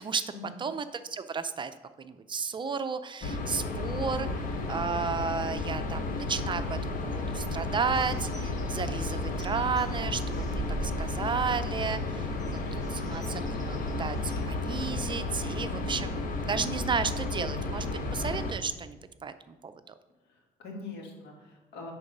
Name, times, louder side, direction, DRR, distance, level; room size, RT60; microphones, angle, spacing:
voice 1, 0.6-1.7 2.0-4.3 4.7-12.3 12.9-17.9 18.1-19.9, right 5 dB, 30° right, 10 dB, 0.4 m, -33 dB
sound 1, 3.2-18.5, left 2 dB, 55° left, 0.9 m, -33 dB
Bird, 7.8-14.4, right 1 dB, 20° left, 1.7 m, -42 dB
voice 2, 15.7-16.0 20.3-21.9, left 3 dB, 80° left, 1 dB, 1.9 m, -43 dB
9.6 x 3.9 x 5.3 m, 1.1 s
cardioid pair, 110°, 17 cm